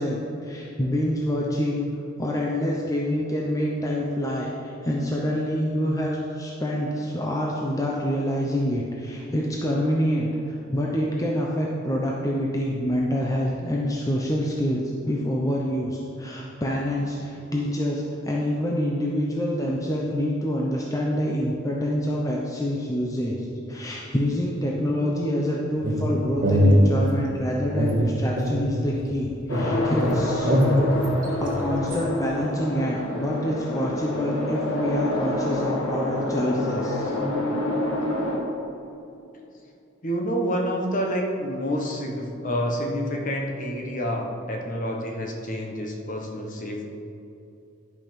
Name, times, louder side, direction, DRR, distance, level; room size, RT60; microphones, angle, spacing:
voice 1, 0.0-1.9 2.2-30.5 31.4-37.1, equal, 15° left, -3 dB, 0.7 m, -26 dB
sound 1, 25.8-27.3 27.7-29.2 29.5-32.0, equal, 40° right, 1.6 m, -22 dB
sound 2, 29.5-38.4, left 1 dB, 80° left, 1.7 m, -28 dB
voice 2, 40.0-46.9, equal, 40° left, 1 dB, 1.2 m, -28 dB
11.0 x 5.6 x 5.2 m, 2.8 s
head